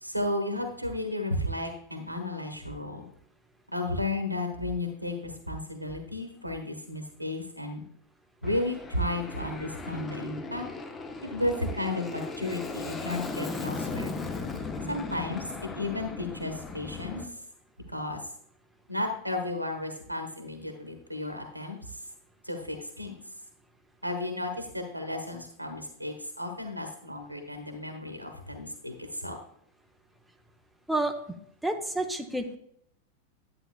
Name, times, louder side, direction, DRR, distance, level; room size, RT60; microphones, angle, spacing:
voice 1, 0.0-3.0 3.7-7.8 8.4-10.6 11.2-14.1 14.9-17.2 17.9-18.2 18.9-21.8 22.4-23.1 24.0-29.4, left 1 dB, 90° right, 6 dB, 1.3 m, -33 dB
Aircraft, 8.4-17.2, left 3 dB, 20° left, 1.0 m, -37 dB
voice 2, 31.6-32.6, right 2 dB, 5° right, 5 dB, 0.8 m, -29 dB
11.0 x 8.6 x 2.3 m, 0.69 s
figure-of-eight pair, 90°, 0 cm